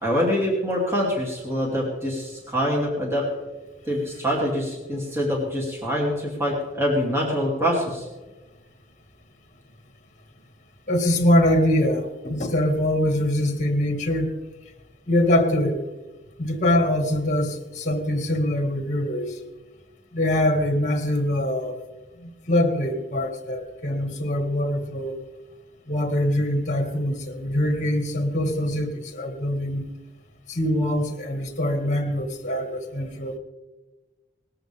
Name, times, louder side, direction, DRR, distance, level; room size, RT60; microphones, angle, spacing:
voice 1, 0.0-3.3 3.9-8.1, equal, 15° right, -3 dB, 2.8 m, -25 dB
voice 2, 10.9-14.3 15.1-15.8 16.4-19.3 20.1-21.8 22.2-25.2 25.9-29.9 30.5-33.4, left 1 dB, 40° left, 4 dB, 2.1 m, -23 dB
20.0 x 14.5 x 3.6 m, 1.2 s
head